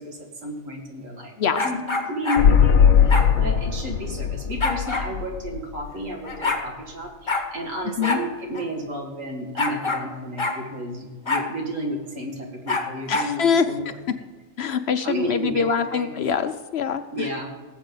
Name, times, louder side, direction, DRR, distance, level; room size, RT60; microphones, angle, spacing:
voice 1, 0.0-1.8 2.1-13.9 15.0-16.1 17.1-17.5, equal, 70° right, 1 dB, 2.5 m, -32 dB
sound 1, 1.5-2.5 3.1-3.3 4.6-5.1 6.0-6.1 6.2-6.6 7.3-7.5 8.0-8.2 8.5-8.6 9.6-10.1 10.4-10.6 11.3-11.5 12.7-13.3, left 3 dB, 20° left, 1.2 m, -25 dB
sound 2, 2.4-6.1 6.4-6.5, left 7 dB, 80° left, 1.2 m, -19 dB
voice 2, 13.1-13.6 14.6-17.0, left 6 dB, 60° left, 9 dB, 0.8 m, -23 dB
18.0 x 8.2 x 3.9 m, 1.4 s
omnidirectional pair, 1.4 m